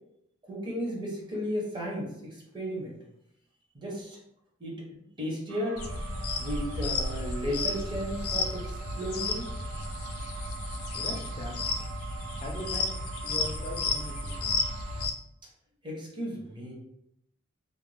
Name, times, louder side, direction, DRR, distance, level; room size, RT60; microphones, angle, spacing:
voice 1, 0.5-2.9 3.7-4.2 4.6-4.8 5.2-5.8 6.4-9.5 15.8-16.7, equal, 20° right, -3 dB, 0.7 m, -34 dB
sound 1, 5.5-15.1, right 8 dB, 85° right, 0.3 m, -45 dB
sound 2, 5.8-15.1, left 3 dB, 80° left, 0.4 m, -33 dB
voice 2, 10.9-11.8 12.4-12.8 13.2-14.1 14.4-14.5, left 1 dB, 25° left, 0 dB, 0.5 m, -40 dB
2.5 x 2.1 x 3.2 m, 0.79 s
head